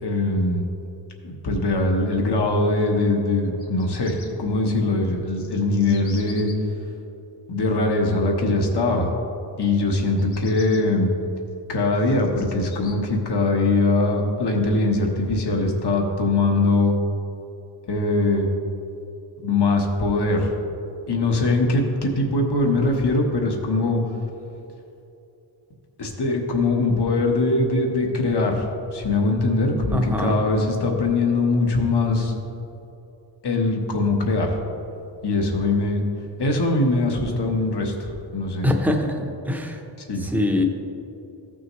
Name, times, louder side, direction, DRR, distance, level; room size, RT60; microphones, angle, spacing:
voice 1, 0.0-0.7 1.2-6.5 7.5-9.1 9.6-11.1 11.7-16.9 17.8-18.5 19.4-20.5 21.1-24.0 26.0-28.7 28.9-32.3 33.4-34.6 35.2-36.0 36.4-38.7 40.1-40.3, left 2 dB, 60° left, 1 dB, 1.3 m, -22 dB
Bird vocalization bird call bird song, 3.4-4.3 5.0-6.5 10.1-10.8 11.5-12.9, left 5 dB, 85° left, 1.2 m, -45 dB
voice 2, 29.9-30.4 38.6-39.8 40.2-40.7, left 1 dB, 5° right, 3 dB, 0.8 m, -23 dB
15.0 x 6.1 x 3.1 m, 2.8 s
wide cardioid pair, 140°, 45 cm